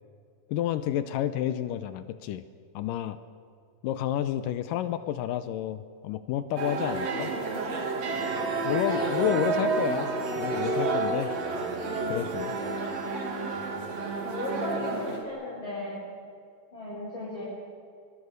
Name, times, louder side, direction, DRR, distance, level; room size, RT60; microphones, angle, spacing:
voice 1, 0.5-2.4 2.8-3.2 3.8-7.3 8.7-10.1 10.4-11.3 12.1-12.6, left 11 dB, 80° left, 11 dB, 2.3 m, -30 dB
sound 1, 6.6-15.2, right 3 dB, 50° right, 3.3 m, -30 dB
voice 2, 14.2-16.0 16.7-17.4, left 1 dB, 35° left, -9 dB, 7.9 m, -35 dB
25.5 x 21.0 x 6.8 m, 2.3 s
omnidirectional pair, 4.0 m